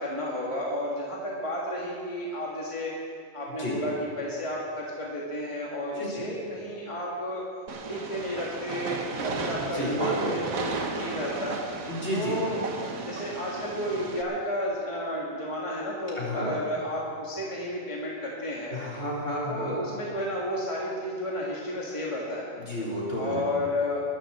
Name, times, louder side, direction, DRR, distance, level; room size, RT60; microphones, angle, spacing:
voice 1, 0.0-2.9 3.3-7.4 7.8-11.6 12.1-12.7 13.0-18.8 19.5-22.5 23.1-24.0, left 1 dB, 25° left, -4 dB, 1.9 m, -32 dB
Train, 7.7-14.2, right 4 dB, 90° right, 1.6 m, -34 dB
voice 2, 9.6-10.4 11.9-12.4 16.2-16.6 18.7-19.8 22.6-23.4, equal, 55° left, -6 dB, 4.5 m, -31 dB
21.5 x 12.5 x 4.4 m, 2.3 s
omnidirectional pair, 1.4 m